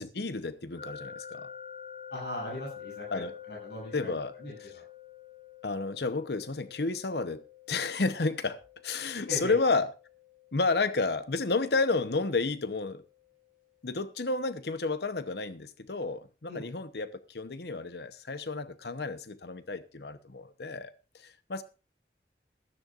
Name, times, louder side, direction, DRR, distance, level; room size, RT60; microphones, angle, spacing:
voice 1, 0.0-1.5 3.1-3.3 3.9-4.3 4.6-4.7 5.6-8.6 8.8-9.9 10.5-13.0 13.8-21.6, left 3 dB, 70° left, 0.9 m, -31 dB
sound 1, 0.8-13.7, left 8 dB, 45° left, 2.9 m, -49 dB
voice 2, 2.1-4.1 4.4-4.8 9.3-9.6 16.5-16.7, left 2 dB, 85° left, 7.8 m, -39 dB
16.0 x 14.0 x 2.5 m
head